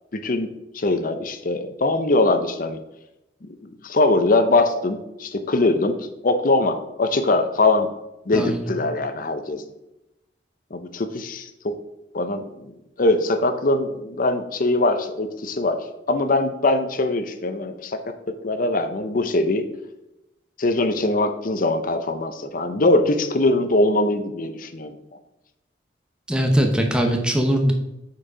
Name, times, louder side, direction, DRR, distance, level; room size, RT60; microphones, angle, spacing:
voice 1, 0.1-0.5 0.7-2.8 3.6-7.9 8.3-9.7 10.7-11.8 12.1-12.7 13.0-15.8 16.1-18.0 18.3-19.6 20.6-24.9, left 2 dB, 50° left, 8 dB, 0.7 m, -22 dB
voice 2, 8.3-8.7 26.3-27.7, right 1 dB, 5° right, 3 dB, 0.7 m, -21 dB
7.5 x 4.7 x 4.9 m, 0.91 s
head